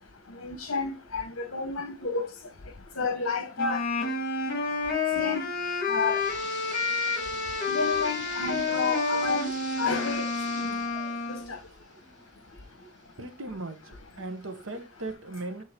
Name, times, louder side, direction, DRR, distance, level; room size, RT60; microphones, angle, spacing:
voice 1, 0.4-1.2 1.5-2.3 3.0-3.8 5.1-5.4 5.9-6.2 7.7-9.4 9.8-10.3 10.6-10.7, left 4 dB, 70° left, 1.0 m, -30 dB
Wind instrument woodwind instrument, 3.6-11.5, left 4 dB, 45° left, 2.0 m, -29 dB
sound 1, 5.7-13.3 13.8-13.9 14.6-14.7 15.1-15.2, right 4 dB, 40° right, 2.0 m, -44 dB
voice 2, 13.2-15.6, right 2 dB, 75° right, 1.0 m, -38 dB
8.0 x 3.7 x 4.4 m
head